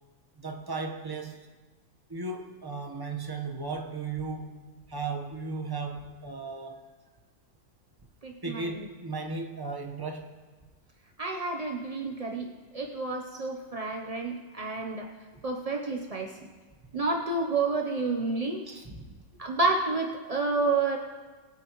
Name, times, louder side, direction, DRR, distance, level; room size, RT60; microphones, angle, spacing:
voice 1, 0.4-1.5 2.1-4.6 4.9-6.8 8.4-10.3 18.7-19.0, right 3 dB, 15° right, 3 dB, 0.8 m, -36 dB
voice 2, 8.2-8.9 11.2-15.1 15.4-16.3 16.9-18.6 19.4-21.0, right 3 dB, 45° right, 1 dB, 0.4 m, -30 dB
21.5 x 8.8 x 3.1 m, 1.4 s
omnidirectional pair, 1.8 m